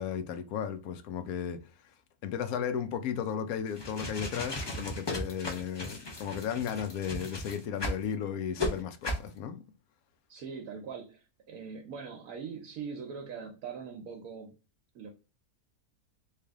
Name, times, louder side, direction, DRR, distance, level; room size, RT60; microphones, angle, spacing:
voice 1, 0.0-1.9 2.2-9.6, left 8 dB, 75° left, 1.0 m, -35 dB
sound 1, 3.7-8.0 8.5-8.7 9.0-9.3, left 1 dB, 40° left, 0.3 m, -36 dB
voice 2, 10.3-14.6 14.9-15.1, right 6 dB, 75° right, 1.1 m, -42 dB
3.3 x 2.8 x 3.5 m
omnidirectional pair, 1.6 m